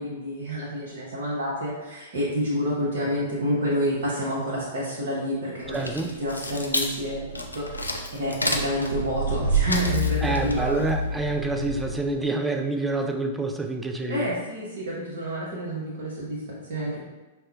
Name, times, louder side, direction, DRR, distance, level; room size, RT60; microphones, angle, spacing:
voice 1, 0.0-10.8 13.6-13.7 14.1-17.0, equal, 55° right, -6 dB, 0.8 m, -29 dB
sound 1, 5.6-12.2, right 1 dB, 85° left, 0.3 m, -28 dB
voice 2, 5.7-6.1 10.2-14.3, right 2 dB, 10° right, 4 dB, 0.3 m, -27 dB
5.3 x 2.1 x 2.4 m, 1.1 s
figure-of-eight pair, 105°, 0 cm